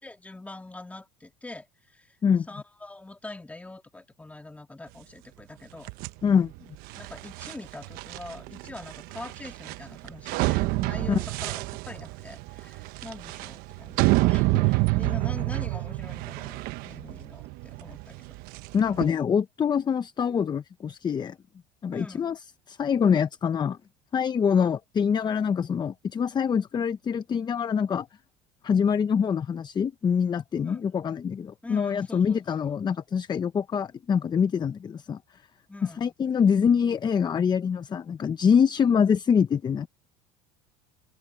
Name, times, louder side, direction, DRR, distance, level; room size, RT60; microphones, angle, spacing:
voice 1, 0.0-2.2 2.5-5.9 6.9-18.4 21.9-22.4 30.6-30.8 31.6-32.4 32.7-32.8 35.7-36.1, left 2 dB, 10° left, 2.4 m, -43 dB
Rubbish being thrown into a dumpster, 5.8-19.1, right 21 dB, 65° right, 1.0 m, -28 dB
voice 2, 18.7-21.4 21.8-22.4 22.7-23.8 24.1-28.1 28.6-35.2 35.8-39.9, left 7 dB, 25° left, 0.8 m, -24 dB
supercardioid pair, 110°, 16 cm